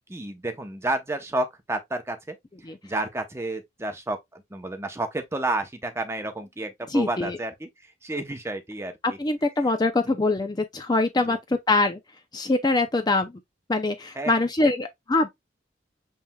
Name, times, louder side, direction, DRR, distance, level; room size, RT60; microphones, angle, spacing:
voice 1, 0.0-2.4 2.8-7.7 8.0-8.9 14.2-14.3, right 2 dB, 15° right, 0.8 m, -30 dB
voice 2, 6.9-7.4 9.0-12.0 12.3-13.3 13.7-15.3, left 2 dB, 20° left, 0.5 m, -23 dB
7.2 x 3.3 x 2.3 m
head